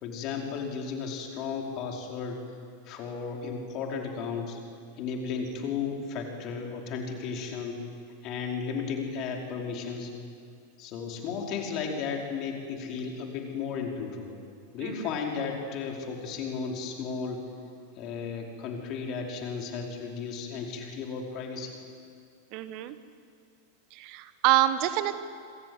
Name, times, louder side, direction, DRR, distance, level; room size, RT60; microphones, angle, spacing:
voice 1, 0.0-2.4 2.8-4.6 5.0-7.8 8.2-10.1 10.8-14.4 14.7-17.5 18.0-21.8, left 5 dB, 40° left, 1 dB, 5.1 m, -34 dB
voice 2, 22.5-23.0 23.9-25.2, right 14 dB, 45° right, 12 dB, 1.3 m, -26 dB
27.0 x 26.0 x 8.2 m, 2.3 s
figure-of-eight pair, 90°, 0 cm